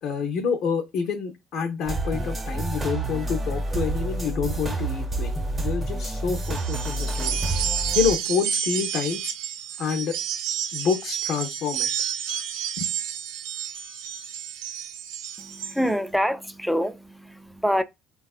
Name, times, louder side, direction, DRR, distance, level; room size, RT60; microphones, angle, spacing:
voice 1, 0.0-7.4 7.9-9.3 9.8-10.1 10.7-11.9 12.8-12.9, left 6 dB, 65° left, 0.6 m, -28 dB
sound 1, 1.8-8.1, right 2 dB, 25° right, 0.8 m, -28 dB
sound 2, 6.4-15.8, right 10 dB, 90° right, 0.3 m, -30 dB
voice 2, 15.4-17.8, equal, ahead, 0.3 m, -26 dB
3.4 x 2.3 x 2.3 m
supercardioid pair, 100°, 0 cm